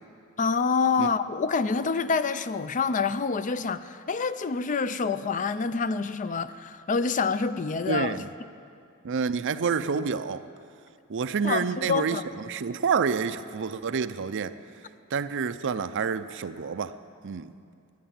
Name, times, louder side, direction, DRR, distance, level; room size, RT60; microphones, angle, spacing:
voice 1, 0.4-8.2 11.4-12.2, left 5 dB, 35° left, 13 dB, 0.4 m, -27 dB
voice 2, 7.9-8.2 9.0-10.4 11.1-12.2 12.5-14.5 15.1-16.9 17.2-17.5, right 6 dB, 60° right, 12 dB, 0.5 m, -28 dB
14.5 x 10.5 x 8.7 m, 2.4 s
head